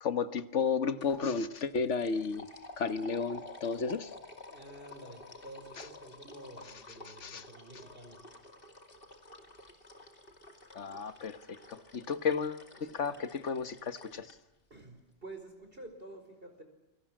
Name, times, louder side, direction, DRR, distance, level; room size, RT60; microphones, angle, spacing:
voice 1, 0.0-2.5 2.8-4.1 5.8-5.9 7.0-7.4 10.7-11.4 11.7-14.3, left 5 dB, 85° left, 11 dB, 1.5 m, -33 dB
sound 1, 1.0-1.2 1.5-14.4, left 2 dB, 50° left, 2.8 m, -52 dB
voice 2, 4.5-8.2 14.7-16.6, right 1 dB, 55° right, 6 dB, 5.1 m, -50 dB
28.5 x 23.5 x 7.5 m, 1.0 s
omnidirectional pair, 1.2 m